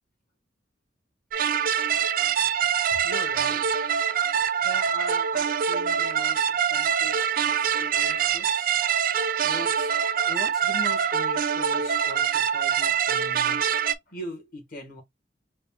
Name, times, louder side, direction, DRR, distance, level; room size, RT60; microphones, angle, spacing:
sound 1, 1.3-14.0, right 8 dB, 50° right, 0.4 m, -24 dB
voice 1, 2.9-3.7 4.5-8.8 9.4-9.9 10.2-13.6 14.1-15.0, left 1 dB, 50° left, 1.6 m, -40 dB
4.1 x 2.4 x 3.4 m
head